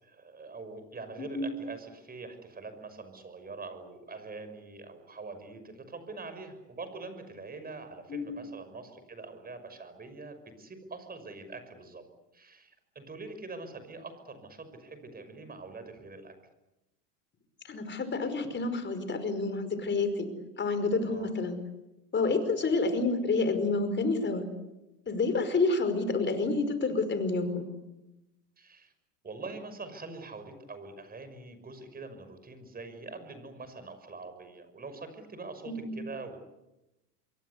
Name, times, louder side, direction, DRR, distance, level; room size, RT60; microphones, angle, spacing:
voice 1, 0.0-12.0 12.3-16.3 21.1-21.3 28.6-28.9 29.2-36.4, right 3 dB, 20° right, 9 dB, 6.0 m, -44 dB
voice 2, 1.2-1.5 8.1-8.4 17.7-20.3 20.6-21.6 22.1-24.5 25.1-27.7 35.7-36.0, left 3 dB, 25° left, 10 dB, 5.3 m, -29 dB
27.5 x 22.5 x 8.3 m, 0.96 s
hypercardioid pair, 110°, 48 cm